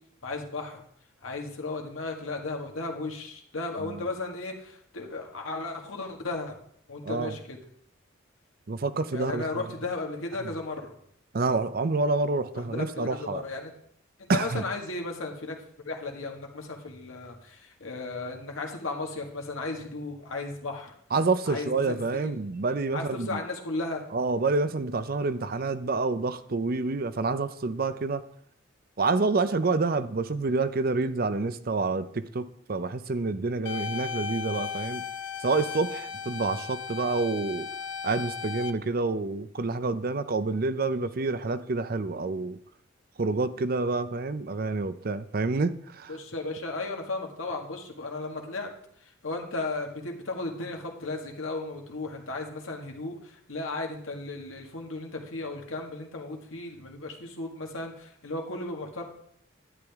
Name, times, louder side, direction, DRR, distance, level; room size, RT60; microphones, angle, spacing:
voice 1, 0.2-0.8 1.2-6.6 6.9-7.6 9.1-10.9 12.5-13.7 14.3-15.6 15.8-20.9 21.5-22.3 22.9-24.0 46.1-48.7 49.2-59.0, left 2 dB, 80° left, 2 dB, 1.8 m, -35 dB
voice 2, 7.0-7.3 8.7-9.4 11.3-13.4 14.3-14.6 21.1-23.4 24.1-28.2 29.0-35.0 35.4-37.7 38.0-42.6 43.2-46.2, right 3 dB, 45° right, 13 dB, 0.5 m, -28 dB
sound 1, 33.7-38.7, left 7 dB, 60° left, 0.7 m, -36 dB
11.0 x 9.9 x 3.5 m, 0.67 s
head